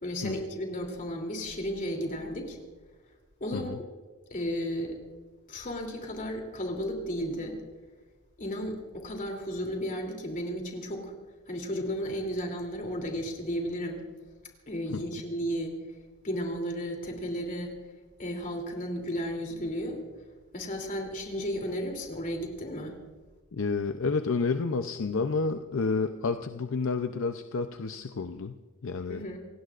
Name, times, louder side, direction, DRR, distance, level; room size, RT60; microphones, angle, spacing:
voice 1, 0.0-2.6 3.4-3.7 4.3-5.0 5.5-7.6 8.4-11.1 11.5-14.0 14.7-15.7 16.2-17.7 18.2-20.1 20.5-23.0 29.1-29.4, equal, 40° left, 2 dB, 3.0 m, -33 dB
voice 2, 23.5-29.2, left 4 dB, 65° left, 7 dB, 0.6 m, -30 dB
28.5 x 17.5 x 2.5 m, 1.4 s
head